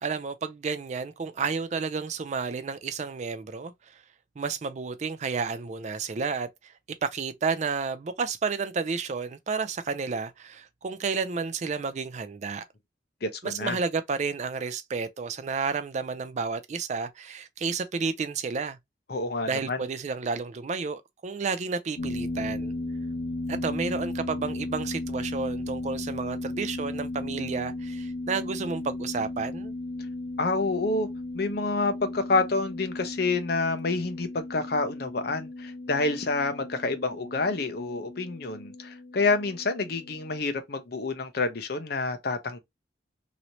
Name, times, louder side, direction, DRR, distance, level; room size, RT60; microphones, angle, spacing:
voice 1, 0.0-3.7 4.4-6.7 7.0-12.6 13.4-18.8 19.5-22.7 23.5-29.7, right 5 dB, 40° right, 0.4 m, -31 dB
voice 2, 13.2-13.8 19.1-19.8 30.4-31.1 31.3-42.6, left 3 dB, 55° left, 0.7 m, -28 dB
sound 1, 22.0-40.4, left 2 dB, 80° left, 1.0 m, -36 dB
3.0 x 2.7 x 2.9 m
head